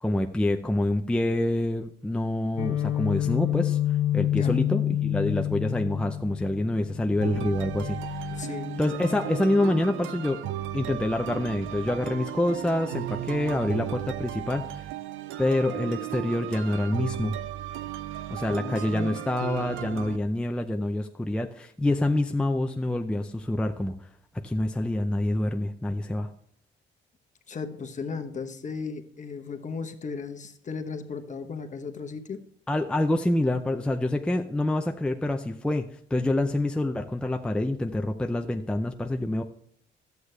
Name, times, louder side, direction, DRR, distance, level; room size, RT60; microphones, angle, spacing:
voice 1, 0.0-3.8 4.1-8.5 8.8-10.4 10.7-14.9 15.4-17.3 18.3-23.9 24.4-26.3 32.7-39.4, left 1 dB, 5° left, 4 dB, 0.5 m, -27 dB
Guitar, 2.6-10.4, left 12 dB, 80° left, 1.3 m, -29 dB
sound 1, 7.2-20.2, right 13 dB, 85° right, 0.4 m, -35 dB
voice 2, 8.3-8.8 18.6-19.2 27.5-32.4, left 5 dB, 40° left, 6 dB, 1.0 m, -36 dB
11.5 x 8.1 x 3.3 m, 0.65 s
cardioid pair, 90°, 20 cm